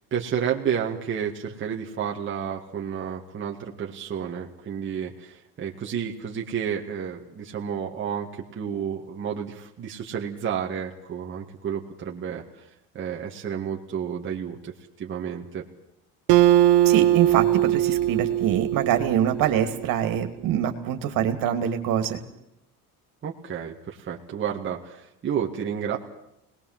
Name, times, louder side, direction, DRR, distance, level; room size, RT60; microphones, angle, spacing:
voice 1, 0.1-12.4 12.9-15.7 23.2-26.0, right 8 dB, 30° right, 0 dB, 2.1 m, -31 dB
Acoustic guitar, 16.3-19.8, right 13 dB, 80° right, 1.6 m, -20 dB
voice 2, 16.8-22.2, right 10 dB, 60° right, 7 dB, 2.9 m, -24 dB
26.5 x 20.0 x 7.6 m, 0.85 s
cardioid pair, 150°, 37 cm